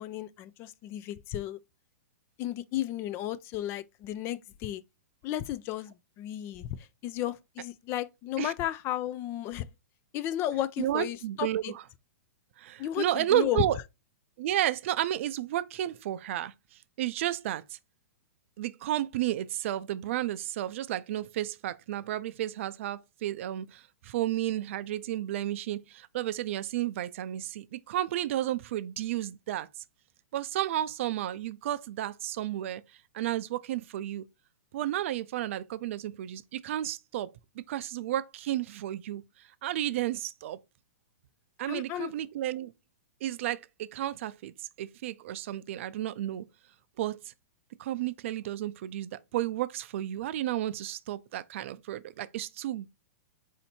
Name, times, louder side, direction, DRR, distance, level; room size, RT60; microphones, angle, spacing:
voice 1, 0.0-1.6 2.4-4.8 5.2-9.7 10.1-11.7 12.8-13.6 41.7-42.1, left 13 dB, 30° left, 0.3 m, -33 dB
voice 2, 10.8-11.8 12.6-13.8 14.4-17.8 18.6-29.7 30.3-32.8 33.1-34.3 34.7-37.3 37.7-40.6 41.6-42.7 43.2-46.4 47.0-47.3 47.8-52.9, right 13 dB, 55° right, 0.4 m, -32 dB
4.2 x 2.8 x 4.2 m
hypercardioid pair, 130°, 8 cm